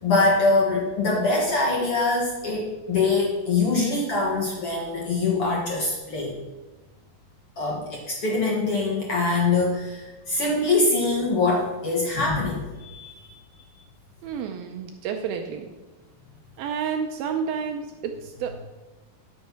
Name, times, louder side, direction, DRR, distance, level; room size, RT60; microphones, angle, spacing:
voice 1, 0.0-6.4 7.6-13.3, left 3 dB, 65° left, -2 dB, 1.4 m, -23 dB
voice 2, 14.2-15.7 16.6-18.6, right 7 dB, 85° right, 5 dB, 2.1 m, -30 dB
12.5 x 6.5 x 5.9 m, 1.2 s
omnidirectional pair, 5.0 m